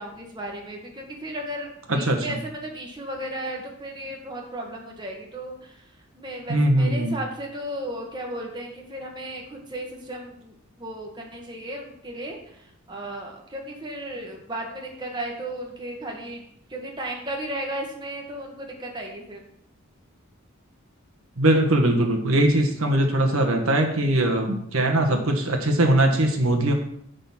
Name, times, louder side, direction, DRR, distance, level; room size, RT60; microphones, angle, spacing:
voice 1, 0.0-5.8 6.1-16.4 16.7-19.4, right 1 dB, 20° right, 0 dB, 1.6 m, -35 dB
voice 2, 6.5-7.2 21.4-26.7, right 1 dB, 85° right, 4 dB, 1.4 m, -21 dB
10.0 x 4.1 x 7.2 m, 0.70 s
head